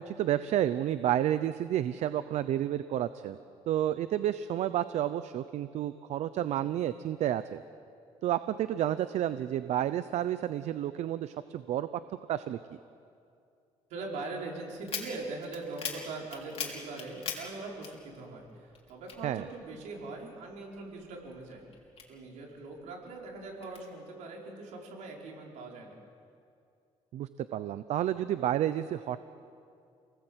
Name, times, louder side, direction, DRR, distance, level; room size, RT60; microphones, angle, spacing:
voice 1, 0.0-3.4 3.7-7.6 8.2-11.9 12.3-12.6 19.2-19.4 27.1-29.2, right 11 dB, 70° right, 13 dB, 0.7 m, -30 dB
voice 2, 13.9-21.7 22.1-26.0, right 3 dB, 85° right, -1 dB, 5.3 m, -41 dB
sound 1, 14.8-18.5 18.7-20.1 20.5-22.6 23.1-23.8, left 6 dB, 55° left, 4.2 m, -40 dB
29.5 x 19.0 x 8.1 m, 2.4 s
cardioid pair, 110°, 12 cm